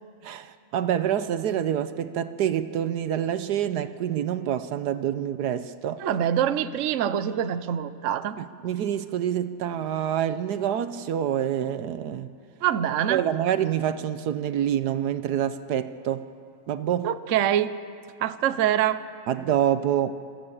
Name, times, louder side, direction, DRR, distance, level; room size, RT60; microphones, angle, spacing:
voice 1, 0.2-6.0 8.4-12.3 13.1-16.3 16.7-17.1 19.3-20.1, right 10 dB, 75° right, 1.3 m, -27 dB
voice 2, 6.0-8.4 12.6-13.2 17.0-17.7 18.2-19.0, right 10 dB, 60° right, 1.0 m, -24 dB
26.0 x 14.5 x 8.7 m
omnidirectional pair, 1.8 m